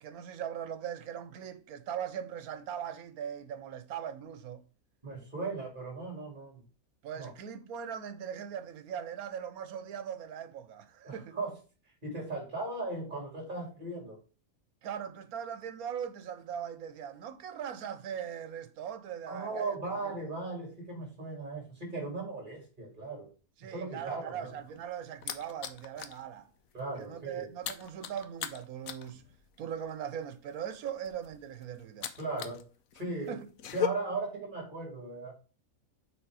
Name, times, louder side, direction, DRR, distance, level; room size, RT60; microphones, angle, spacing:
voice 1, 0.0-4.6 7.0-11.4 14.8-19.8 20.0-20.1 23.6-26.5 27.0-29.2 29.6-32.1 33.3-33.5, right 8 dB, 90° right, 1.2 m, -40 dB
voice 2, 5.0-6.6 7.2-7.3 11.0-11.5 12.0-14.2 19.3-23.3 23.7-24.5 26.7-27.5 32.2-32.6 32.9-33.4 33.7-35.3, right 3 dB, 35° right, 2.7 m, -37 dB
sound 1, 24.4-26.2 26.6-26.8 27.1-32.6 32.9-33.9, left 9 dB, 75° left, 1.1 m, -38 dB
6.3 x 3.9 x 4.7 m
omnidirectional pair, 1.5 m